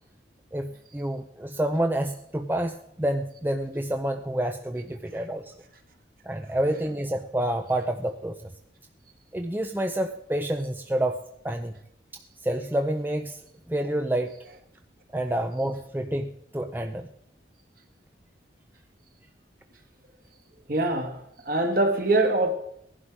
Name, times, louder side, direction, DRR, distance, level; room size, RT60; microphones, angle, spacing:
voice 1, 0.5-5.5 6.3-8.5 9.3-11.7 12.4-13.4 13.7-14.4 15.1-17.1, right 1 dB, 10° right, 0.5 m, -28 dB
voice 2, 20.7-22.5, right 2 dB, 50° right, 1.7 m, -24 dB
17.5 x 11.0 x 4.9 m
head